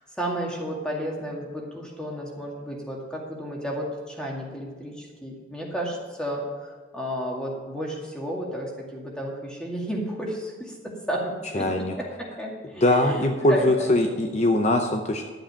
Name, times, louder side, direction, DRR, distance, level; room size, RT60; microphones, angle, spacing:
voice 1, 0.2-14.0, equal, 5° left, -2 dB, 2.1 m, -32 dB
voice 2, 11.5-11.9 12.8-15.2, left 1 dB, 40° left, 4 dB, 0.7 m, -22 dB
11.5 x 7.8 x 5.7 m, 1.4 s
head